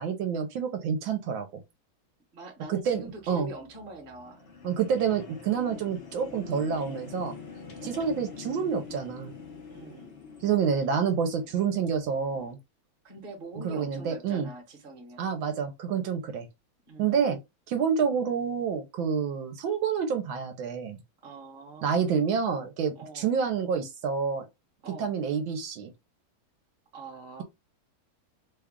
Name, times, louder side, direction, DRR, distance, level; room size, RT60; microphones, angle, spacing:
voice 1, 0.0-1.5 2.7-3.5 4.6-7.3 7.8-9.3 10.4-12.6 13.6-14.5 15.2-16.5 17.0-17.4 17.7-21.0 21.8-24.5 25.0-25.9, right 6 dB, 75° right, 1.3 m, -28 dB
voice 2, 2.3-4.4 7.7-8.1 9.7-10.2 13.0-15.3 16.9-17.2 21.2-22.4 22.9-23.3 24.8-25.1 26.9-27.4, right 2 dB, 35° right, 1.0 m, -44 dB
sound 1, 2.8-12.5, left 5 dB, 55° left, 0.6 m, -45 dB
3.4 x 2.3 x 3.5 m
omnidirectional pair, 2.2 m